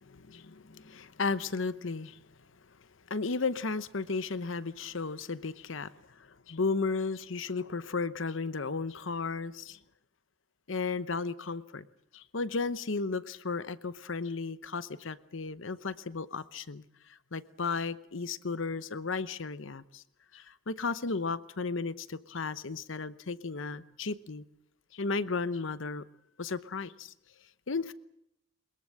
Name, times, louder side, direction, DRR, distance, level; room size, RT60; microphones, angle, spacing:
voice 1, 0.1-2.2 3.1-9.8 10.7-11.9 12.1-20.0 20.3-24.4 24.9-26.0 26.4-27.1 27.7-27.9, left 4 dB, 70° left, 0.9 m, -34 dB
22.5 x 21.0 x 7.8 m
head